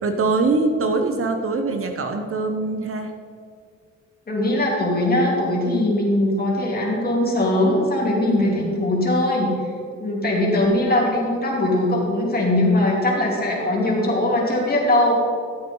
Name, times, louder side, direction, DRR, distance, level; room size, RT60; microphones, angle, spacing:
voice 1, 0.0-3.1 8.3-8.7, right 3 dB, 45° right, 6 dB, 0.9 m, -23 dB
voice 2, 4.3-9.5 10.0-15.1, left 1 dB, 30° left, -3 dB, 3.1 m, -20 dB
14.5 x 7.9 x 3.9 m, 2.2 s
cardioid pair, 90°, 30 cm